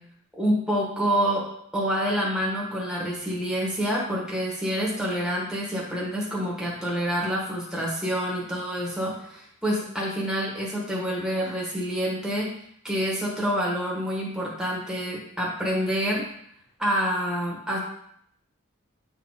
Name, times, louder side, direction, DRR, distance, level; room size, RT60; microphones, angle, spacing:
voice 1, 0.4-1.5 1.7-12.5 12.8-16.2 16.8-17.8, equal, ahead, -4 dB, 1.4 m, -27 dB
9.1 x 3.6 x 4.0 m, 0.69 s
head